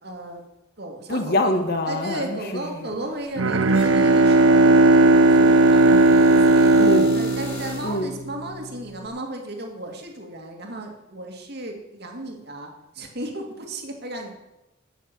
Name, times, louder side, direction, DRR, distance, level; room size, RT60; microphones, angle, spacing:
voice 1, 0.0-0.4 0.8-1.6 1.9-6.7 7.1-14.3, right 1 dB, 55° right, 2.3 m, -35 dB
voice 2, 1.1-2.9 6.7-7.1 7.8-8.1, left 1 dB, 55° left, 1.5 m, -25 dB
Bowed string instrument, 3.4-8.3, right 2 dB, 85° right, 0.8 m, -16 dB
sound 1, 3.7-8.1, left 1 dB, 30° left, 3.7 m, -38 dB
16.5 x 6.4 x 7.6 m
head